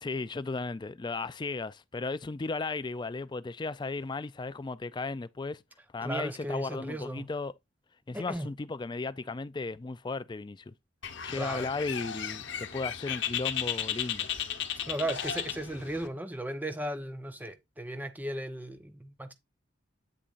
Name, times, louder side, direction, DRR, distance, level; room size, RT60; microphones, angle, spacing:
voice 1, 0.0-5.6 5.9-7.5 8.1-10.7 11.2-14.3, left 3 dB, 20° left, 0.4 m, -35 dB
voice 2, 6.0-7.3 8.1-8.5 11.3-11.7 14.9-19.3, right 1 dB, 10° right, 0.8 m, -36 dB
Bird, 11.0-16.1, left 9 dB, 65° left, 0.9 m, -35 dB
8.9 x 7.0 x 2.5 m
head